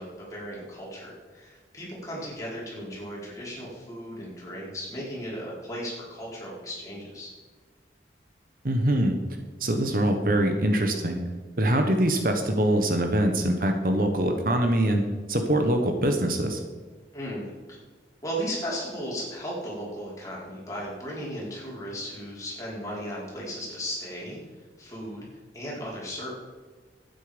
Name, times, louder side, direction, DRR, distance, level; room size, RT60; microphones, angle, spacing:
voice 1, 0.0-7.3 17.1-17.5 18.2-24.4 24.8-25.3 25.5-26.3, equal, 20° left, -6 dB, 4.5 m, -36 dB
voice 2, 8.6-9.1 9.6-11.2 11.6-16.6, right 1 dB, 55° right, 5 dB, 1.3 m, -23 dB
12.0 x 9.4 x 5.2 m, 1.4 s
head